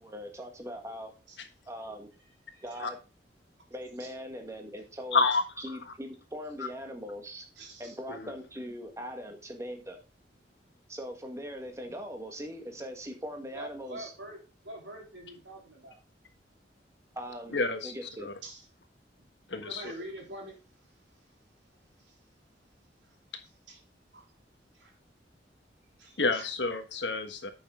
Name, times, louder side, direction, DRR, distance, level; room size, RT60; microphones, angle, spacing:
voice 1, 0.0-1.1 1.7-2.1 2.6-3.0 3.7-5.2 5.6-7.5 7.8-10.0 10.9-14.1 17.1-17.5 17.8-18.3, equal, 15° right, 1.5 m, -40 dB
voice 2, 5.1-5.4 8.1-8.3 17.5-17.9 18.2-18.3 19.5-19.8 26.2-27.5, left 3 dB, 80° left, 1.4 m, -28 dB
voice 3, 7.6-8.0 13.5-14.4 14.6-16.0 18.4-18.7 19.2-21.3 22.0-22.2 23.7-23.8 24.1-24.3 24.7-24.9 26.0-26.4, right 1 dB, 85° right, 3.4 m, -46 dB
9.1 x 6.4 x 3.7 m
head